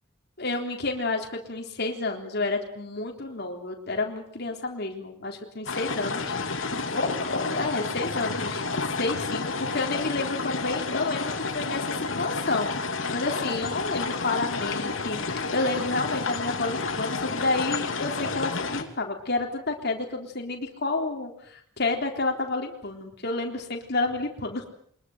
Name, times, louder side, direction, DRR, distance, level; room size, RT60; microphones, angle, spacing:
voice 1, 0.4-8.6 9.0-24.7, left 3 dB, 55° left, 2 dB, 3.6 m, -30 dB
sound 1, 5.7-18.8, left 4 dB, 90° left, 2.9 m, -30 dB
24.0 x 21.0 x 8.0 m, 0.66 s
head